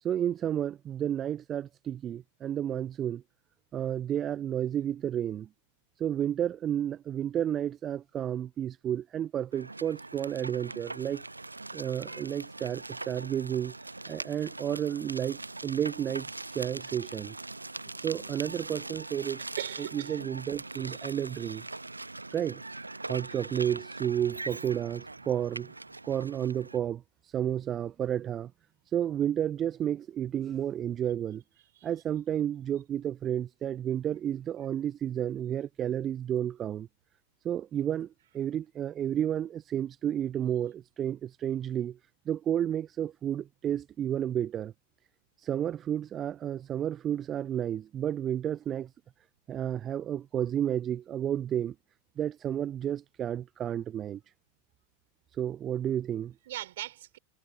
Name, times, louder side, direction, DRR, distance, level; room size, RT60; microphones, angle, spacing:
voice 1, 0.0-3.2 3.7-5.5 6.0-11.2 11.7-13.7 14.1-16.3 16.5-17.4 18.0-19.4 19.8-21.6 22.3-22.6 23.1-25.7 26.0-28.5 28.9-31.4 31.8-36.9 37.4-38.1 38.3-42.0 42.3-44.7 45.4-48.9 49.5-51.7 52.2-54.2 55.4-56.3, right 10 dB, 25° right, 0.5 m, -31 dB
sound 1, 9.5-26.8, right 2 dB, 80° right, 1.1 m, -42 dB
voice 2, 19.6-20.2 20.8-21.2 21.4-21.5 31.7-31.9 56.5-57.2, right 14 dB, 55° right, 4.7 m, -40 dB
figure-of-eight pair, 90°, 0 cm